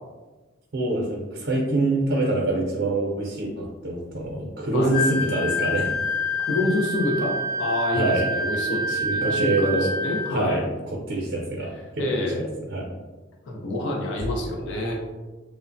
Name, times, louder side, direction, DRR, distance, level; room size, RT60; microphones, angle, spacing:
voice 1, 0.7-5.9 7.9-8.3 8.9-9.9 10.3-12.3 12.7-12.8, right 2 dB, 70° right, -1 dB, 0.5 m, -25 dB
Wind instrument woodwind instrument, 4.9-10.4, left 1 dB, 10° left, 0.6 m, -27 dB
voice 2, 6.4-10.6 12.0-12.5 13.5-14.9, left 2 dB, 80° left, -1 dB, 0.5 m, -27 dB
3.1 x 2.1 x 2.5 m, 1.2 s
head